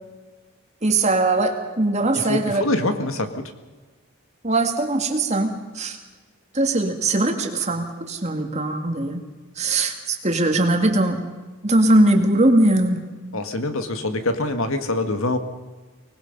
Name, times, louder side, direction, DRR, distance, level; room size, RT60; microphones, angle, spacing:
voice 1, 0.8-2.6 4.4-6.0 6.5-9.2 9.6-11.2 11.6-13.0, right 2 dB, 30° right, 5 dB, 2.2 m, -20 dB
voice 2, 2.1-3.4 13.3-15.4, left 2 dB, 65° left, 7 dB, 2.0 m, -24 dB
24.5 x 19.5 x 5.5 m, 1.3 s
head